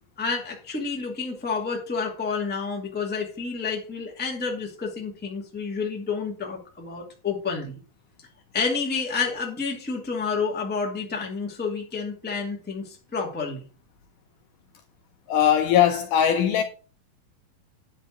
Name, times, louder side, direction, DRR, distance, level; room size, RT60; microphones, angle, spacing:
voice 1, 0.2-7.8 8.5-13.6, left 5 dB, 5° left, 1.2 m, -29 dB
voice 2, 15.3-16.6, left 9 dB, 75° left, 2.0 m, -20 dB
10.0 x 4.4 x 6.0 m
omnidirectional pair, 4.2 m